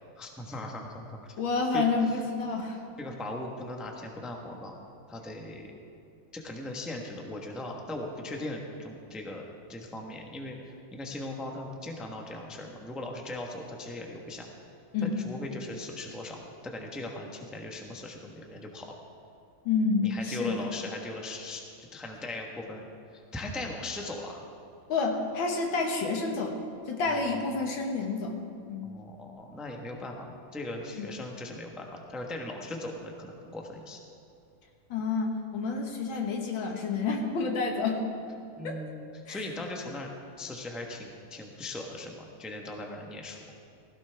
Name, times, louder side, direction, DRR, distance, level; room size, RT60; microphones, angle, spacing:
voice 1, 0.1-1.4 1.7-1.9 3.0-4.8 5.1-5.7 6.3-14.5 15.0-18.9 20.0-22.8 23.1-24.4 27.0-27.6 28.8-34.0 38.6-43.4, left 2 dB, ahead, 1 dB, 0.8 m, -39 dB
voice 2, 1.4-2.8 14.9-15.2 19.7-20.7 24.9-28.4 28.7-28.9 31.0-31.1 34.9-38.0 38.6-38.8 39.3-39.4, left 4 dB, 85° left, 2 dB, 2.2 m, -29 dB
16.5 x 16.0 x 3.5 m, 2.5 s
omnidirectional pair, 2.1 m